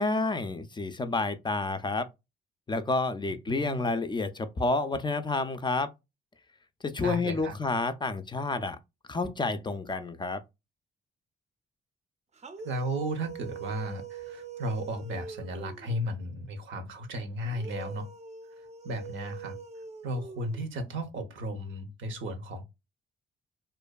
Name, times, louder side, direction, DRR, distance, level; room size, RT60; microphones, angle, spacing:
voice 1, 0.0-2.1 2.7-5.9 6.8-8.8 9.1-10.4, left 3 dB, 25° left, 0.3 m, -29 dB
voice 2, 3.5-3.9 7.0-7.6 12.6-18.1 18.6-19.6 20.0-22.6, equal, 75° right, 0.7 m, -35 dB
sound 1, 12.3-16.1 17.4-21.0, right 5 dB, 35° right, 0.5 m, -43 dB
2.5 x 2.2 x 2.2 m
supercardioid pair, 60°, 20 cm